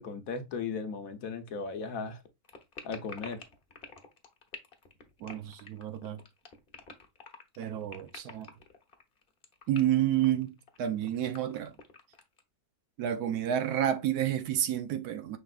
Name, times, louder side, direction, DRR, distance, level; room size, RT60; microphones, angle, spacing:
voice 1, 0.0-2.2 2.8-3.4, left 5 dB, 65° left, 1.2 m, -36 dB
sound 1, 2.4-12.4, left 4 dB, 45° left, 0.9 m, -47 dB
voice 2, 5.2-6.2 7.6-8.5 9.7-11.8 13.0-15.4, right 11 dB, 80° right, 1.2 m, -30 dB
6.0 x 3.5 x 2.4 m
omnidirectional pair, 1.6 m